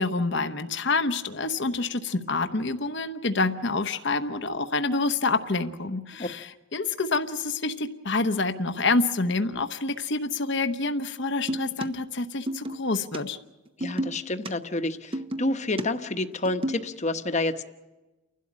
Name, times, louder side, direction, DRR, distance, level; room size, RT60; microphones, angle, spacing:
voice 1, 0.0-13.4, left 3 dB, 55° left, 8 dB, 1.0 m, -27 dB
sound 1, 11.5-11.9 12.5-12.8 13.1-13.2 13.8-14.5 15.1-15.8 16.3-16.9, right 1 dB, 25° right, 0.8 m, -31 dB
voice 2, 13.8-17.6, left 2 dB, 35° left, 8 dB, 1.1 m, -29 dB
30.0 x 12.0 x 8.7 m, 1.1 s
head